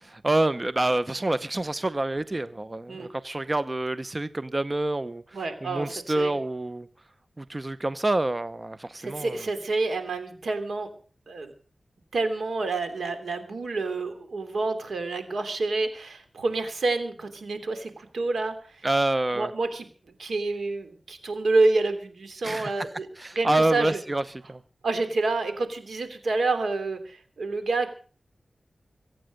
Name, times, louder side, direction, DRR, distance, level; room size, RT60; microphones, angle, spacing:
voice 1, 0.0-6.9 7.4-9.4 18.8-19.5 22.4-22.9 23.2-24.6, right 2 dB, 30° right, 0.7 m, -27 dB
voice 2, 5.3-5.9 6.1-6.3 9.0-10.9 11.3-11.5 12.1-18.8 19.3-19.9 20.2-23.1 23.3-24.0 24.8-27.9, right 3 dB, 85° right, 3.1 m, -28 dB
23.5 x 9.1 x 6.5 m
wide cardioid pair, 60°, 0 cm